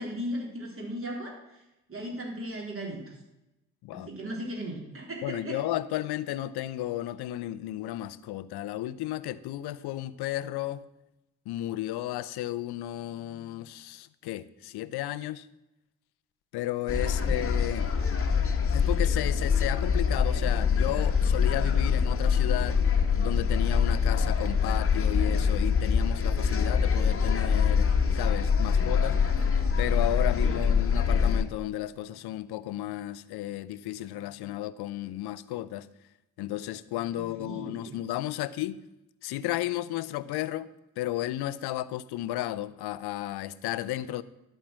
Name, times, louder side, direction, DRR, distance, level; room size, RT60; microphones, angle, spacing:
voice 1, 0.0-1.6 1.9-3.2 3.9-5.6 30.5-30.6 37.2-38.0, equal, 30° right, 3.3 m, -37 dB
voice 2, 5.2-10.9 11.5-15.5 16.5-17.9 18.7-22.8 23.2-29.3 29.8-35.9 36.4-38.8 39.2-40.7 41.0-44.2, left 14 dB, 65° left, 0.6 m, -33 dB
sound 1, 16.9-31.4, left 6 dB, 30° left, 1.3 m, -24 dB
11.5 x 4.5 x 7.5 m
hypercardioid pair, 45°, 41 cm